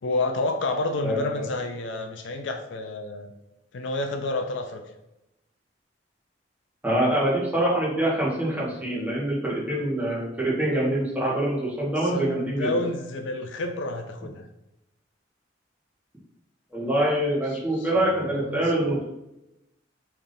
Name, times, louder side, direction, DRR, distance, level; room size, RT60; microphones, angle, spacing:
voice 1, 0.0-3.3 3.7-4.8 12.0-14.5 17.7-18.7, left 2 dB, 75° left, 5 dB, 0.4 m, -29 dB
voice 2, 1.0-1.4 6.8-12.7 16.7-19.0, right 1 dB, 10° right, -7 dB, 1.2 m, -25 dB
3.4 x 2.7 x 3.9 m, 0.91 s
head